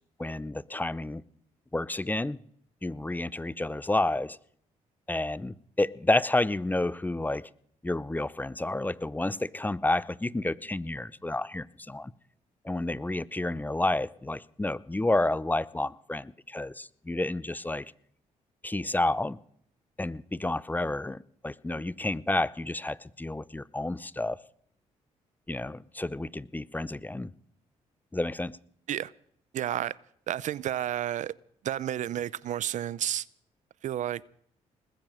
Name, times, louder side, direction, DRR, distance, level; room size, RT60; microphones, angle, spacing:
voice 1, 0.2-1.2 1.7-2.4 2.8-4.4 5.1-7.4 7.8-12.1 12.6-17.9 18.6-19.4 20.0-24.4 25.5-27.3 28.1-28.6, left 2 dB, 15° left, 0.6 m, -30 dB
voice 2, 29.5-30.0 30.3-31.3 31.6-33.2 33.8-34.2, right 11 dB, 70° right, 0.6 m, -31 dB
20.0 x 8.9 x 7.8 m
supercardioid pair, 70°, 13 cm